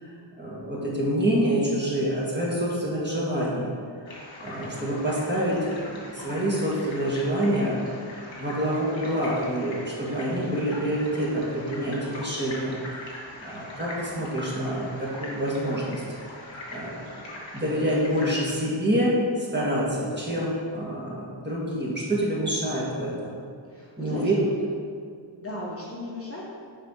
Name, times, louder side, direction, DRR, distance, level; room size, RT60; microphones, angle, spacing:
voice 1, 0.0-3.7 4.4-7.8 8.4-16.0 16.7-17.1 17.5-23.3 24.0-24.3, equal, 20° right, -6 dB, 2.0 m, -27 dB
sound 1, 4.1-18.5, left 1 dB, 70° left, 1.9 m, -42 dB
voice 2, 23.7-24.5 25.1-26.4, left 2 dB, 30° left, -5 dB, 1.3 m, -36 dB
7.4 x 5.0 x 6.4 m, 2.2 s
wide cardioid pair, 160°, 46 cm